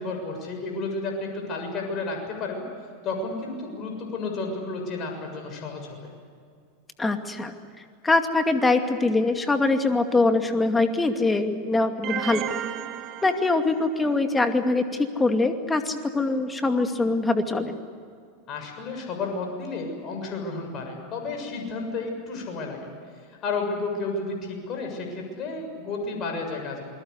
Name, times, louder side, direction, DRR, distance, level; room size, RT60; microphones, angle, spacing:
voice 1, 0.0-2.7 3.0-6.0 18.5-22.9 23.4-26.8, left 3 dB, 40° left, 2 dB, 6.9 m, -32 dB
voice 2, 7.0-7.5 8.0-12.5 13.2-17.8, left 3 dB, 15° left, 6 dB, 2.4 m, -23 dB
sound 1, 12.0-14.1, right 11 dB, 45° right, 1.7 m, -34 dB
28.0 x 21.0 x 8.3 m, 2.2 s
figure-of-eight pair, 90°, 0 cm